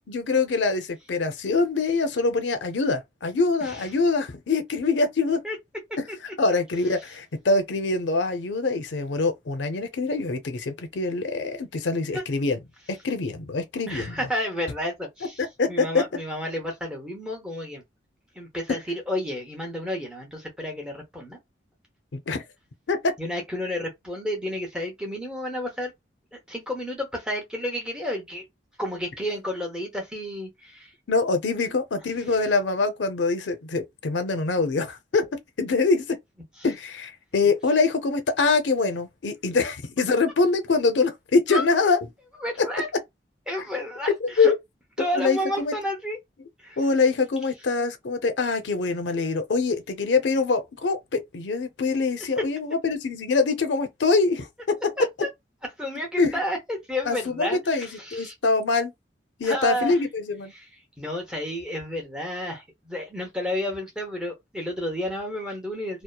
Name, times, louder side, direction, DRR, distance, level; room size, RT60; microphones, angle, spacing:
voice 1, 0.1-5.4 6.0-6.1 6.4-12.6 13.0-14.1 15.4-16.0 22.1-22.4 22.9-23.1 31.1-35.3 35.6-36.2 36.6-42.0 42.6-42.7 44.2-44.6 45.0-45.7 46.8-54.8 56.2-56.4 57.1-58.9 59.4-60.5, left 3 dB, 85° left, 0.5 m, -24 dB
voice 2, 13.9-15.4 15.7-17.8 18.4-21.4 23.2-25.9 26.5-28.5 28.8-30.9 41.5-41.7 42.4-42.9 43.5-44.5 45.0-46.2 46.6-46.8 55.0-55.3 55.8-58.3 59.4-60.0 60.5-60.6 61.0-66.0, left 1 dB, 5° right, 0.8 m, -31 dB
2.8 x 2.0 x 2.2 m
head